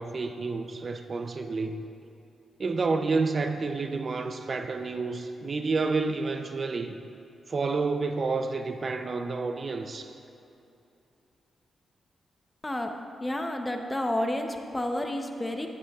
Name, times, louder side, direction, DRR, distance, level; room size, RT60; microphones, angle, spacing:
voice 1, 0.0-1.8 2.6-7.0 7.5-10.1, right 4 dB, 45° right, 7 dB, 0.5 m, -29 dB
voice 2, 13.2-15.7, left 1 dB, 15° left, 4 dB, 0.8 m, -30 dB
14.0 x 9.9 x 2.4 m, 2.8 s
cardioid pair, 80°, 0 cm